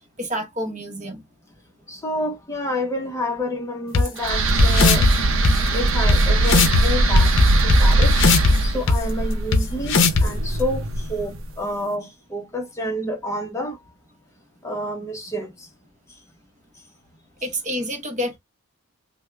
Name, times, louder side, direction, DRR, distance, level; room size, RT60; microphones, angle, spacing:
voice 1, 0.2-1.2 17.4-18.4, equal, 35° right, 0.8 m, -28 dB
voice 2, 1.9-5.0 5.7-7.3 7.6-8.1 8.6-13.8 14.6-15.5, left 1 dB, 15° left, 0.6 m, -28 dB
sound 1, 3.9-4.0 4.6-5.1 5.4-5.5 6.1-6.2 6.5-6.8 7.2-8.5 8.9-9.0 9.5-9.6 9.9-10.3, left 4 dB, 55° left, 0.6 m, -17 dB
sound 2, 4.2-11.4, right 2 dB, 60° right, 0.6 m, -20 dB
3.4 x 2.1 x 3.2 m
head